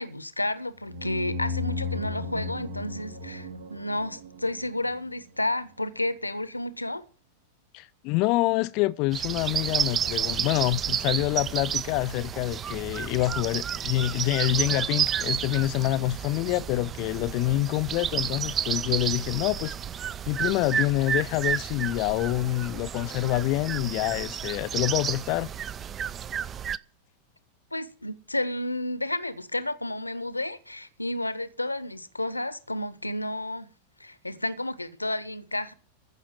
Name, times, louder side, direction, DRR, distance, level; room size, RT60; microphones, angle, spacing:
voice 1, 0.0-7.0 27.7-33.7 34.0-35.7, left 1 dB, 85° left, 1.0 m, -31 dB
sound 1, 0.8-5.4, left 3 dB, 65° right, 1.9 m, -35 dB
voice 2, 7.7-19.8 20.3-25.5, left 17 dB, 45° left, 0.5 m, -26 dB
sound 2, 9.1-26.8, right 8 dB, 25° right, 0.5 m, -31 dB
14.5 x 6.2 x 7.8 m
figure-of-eight pair, 90°, 0 cm